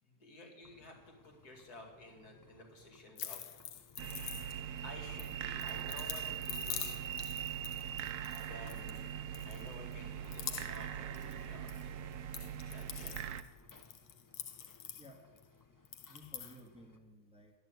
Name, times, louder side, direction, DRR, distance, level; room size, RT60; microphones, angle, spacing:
voice 1, 0.0-3.7 4.8-7.2 8.4-9.1 9.5-12.1 12.7-13.1, left 1 dB, 65° left, 2 dB, 2.7 m, -53 dB
sound 1, 0.6-17.0, left 4 dB, 30° left, 0.4 m, -63 dB
sound 2, 3.2-4.8 5.2-9.0 9.3-9.9 10.2-11.8 12.1-15.4 15.9-16.6, left 9 dB, 90° left, 1.4 m, -45 dB
voice 2, 3.9-4.8 14.9-15.4 16.1-17.5, equal, 5° right, 1 dB, 1.6 m, -58 dB
sound 3, 4.0-13.4, right 9 dB, 75° right, 1.2 m, -41 dB
11.5 x 8.3 x 9.5 m, 1.3 s
omnidirectional pair, 1.7 m